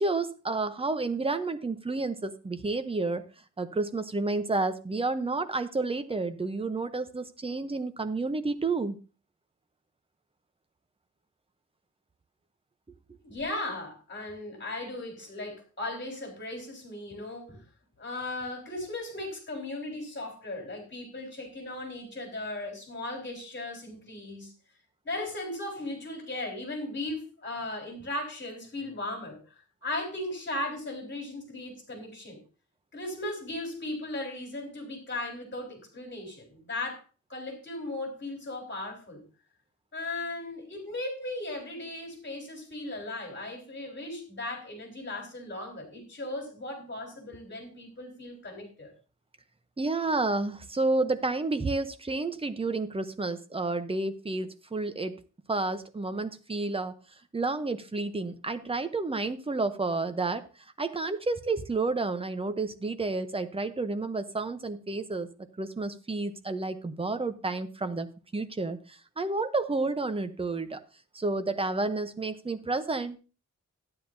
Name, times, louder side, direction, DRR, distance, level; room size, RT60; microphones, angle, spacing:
voice 1, 0.0-3.2 3.6-9.0 49.8-55.2 55.5-56.9 57.3-60.5 60.8-65.3 65.6-68.1 68.3-70.8 71.1-73.2, right 3 dB, 20° right, 9 dB, 0.7 m, -30 dB
voice 2, 13.2-17.6 18.0-24.5 25.0-32.4 32.9-37.0 37.3-39.2 39.9-48.9, left 2 dB, 40° left, 0 dB, 3.6 m, -37 dB
12.5 x 9.7 x 2.7 m, 0.33 s
wide cardioid pair, 150°, 30 cm